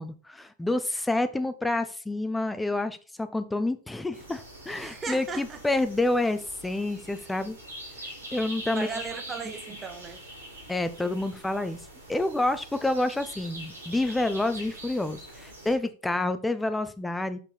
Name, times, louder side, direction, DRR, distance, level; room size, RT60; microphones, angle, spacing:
voice 1, 0.0-7.6 8.3-8.9 10.7-11.8 12.1-17.4, left 2 dB, 5° left, 0.7 m, -28 dB
sound 1, 4.1-15.7, equal, 75° right, 3.1 m, -44 dB
voice 2, 4.8-5.6 8.7-10.2, right 5 dB, 20° right, 1.4 m, -36 dB
6.7 x 5.7 x 4.3 m
figure-of-eight pair, 90°, 0 cm